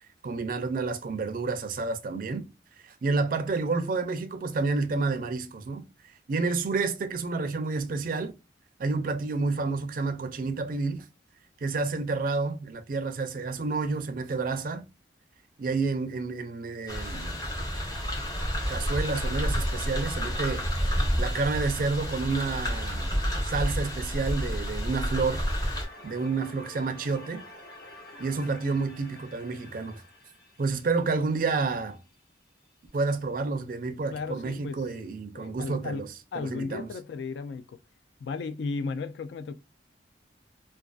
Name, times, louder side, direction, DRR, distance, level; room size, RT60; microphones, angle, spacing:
voice 1, 0.2-2.5 2.8-8.3 8.8-11.0 11.6-14.8 15.6-17.4 18.7-20.6 21.2-25.4 26.0-27.4 28.2-30.0 30.6-32.0 32.9-36.9, right 4 dB, 50° right, 0.4 m, -30 dB
sound 1, 16.9-25.8, equal, 20° left, 0.7 m, -29 dB
sound 2, 25.3-32.2, left 1 dB, 55° left, 1.0 m, -49 dB
voice 2, 34.1-34.9 35.3-37.8 38.2-39.6, left 4 dB, 70° left, 0.3 m, -35 dB
2.4 x 2.3 x 2.3 m
head